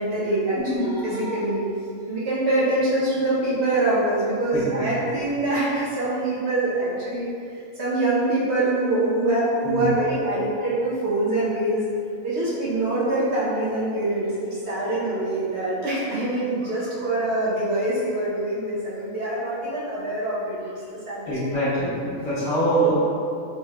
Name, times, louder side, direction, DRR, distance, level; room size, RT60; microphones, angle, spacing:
voice 1, 0.0-1.6 2.1-11.8 12.2-20.7 21.1-21.7, right 2 dB, 60° right, -9 dB, 1.1 m, -24 dB
voice 2, 4.5-4.9 9.6-9.9 21.3-22.9, right 1 dB, 40° left, -12 dB, 1.4 m, -24 dB
4.5 x 3.3 x 2.3 m, 2.5 s
omnidirectional pair, 1.4 m